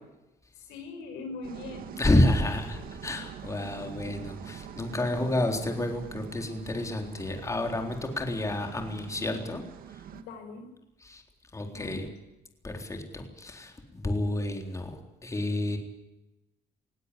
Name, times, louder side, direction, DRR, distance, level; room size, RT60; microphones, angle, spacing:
voice 1, 0.6-2.0 3.7-3.9 5.0-5.5 10.1-10.7 11.7-12.0, left 3 dB, 90° left, 5 dB, 5.8 m, -42 dB
sound 1, 1.4-10.2, right 9 dB, 60° right, 1.9 m, -44 dB
voice 2, 2.0-9.6 9.9-10.0 11.0-11.2 11.5-12.1 12.6-15.8, left 1 dB, 20° left, 3 dB, 3.8 m, -29 dB
20.0 x 16.5 x 9.9 m, 0.98 s
cardioid pair, 110°, 17 cm